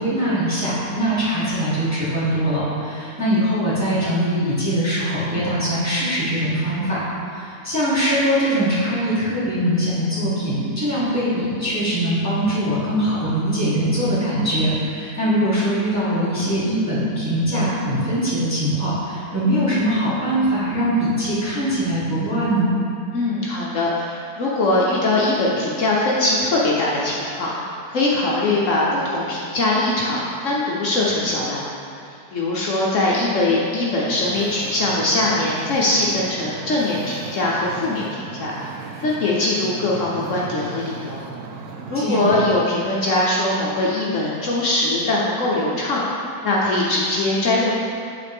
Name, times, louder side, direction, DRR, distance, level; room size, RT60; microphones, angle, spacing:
voice 1, 0.0-22.7 41.9-42.4, equal, 10° right, -11 dB, 1.5 m, -22 dB
voice 2, 23.1-38.7 39.0-41.2 41.9-46.0 46.4-47.7, left 2 dB, 60° left, -5 dB, 1.0 m, -21 dB
Wind / Ocean, 34.2-42.1, right 5 dB, 90° right, 1.1 m, -36 dB
9.4 x 4.0 x 3.5 m, 2.5 s
omnidirectional pair, 1.6 m